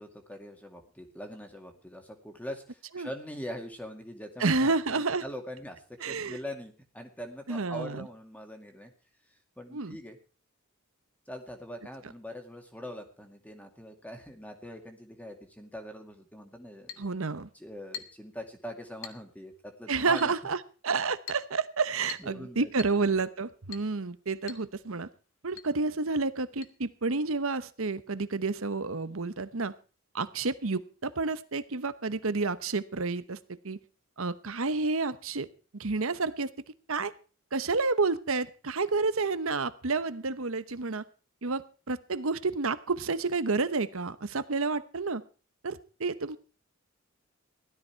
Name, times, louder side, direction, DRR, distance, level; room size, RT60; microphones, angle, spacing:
voice 1, 0.0-8.9 9.3-10.2 11.3-17.1 17.5-20.3 22.2-22.9, equal, 5° left, 4 dB, 2.2 m, -43 dB
voice 2, 4.4-5.2 6.0-6.4 7.5-8.0 9.7-10.0 17.0-17.5 19.9-20.6 20.8-25.1 25.4-29.7 30.1-33.4 33.6-33.8 34.2-36.5 36.9-37.1 37.5-41.0 41.4-45.2 45.6-46.4, right 4 dB, 70° right, 14 dB, 1.0 m, -30 dB
Chink clink, 16.9-17.1 17.9-18.3 19.0-19.3 20.2-20.4 21.3-21.5 22.1-22.4 22.8-23.0 23.7-23.9 24.5-24.7 24.9-25.0 25.6-25.7 26.6-26.7, left 9 dB, 65° left, 1.5 m, -43 dB
16.5 x 12.5 x 4.6 m, 0.36 s
head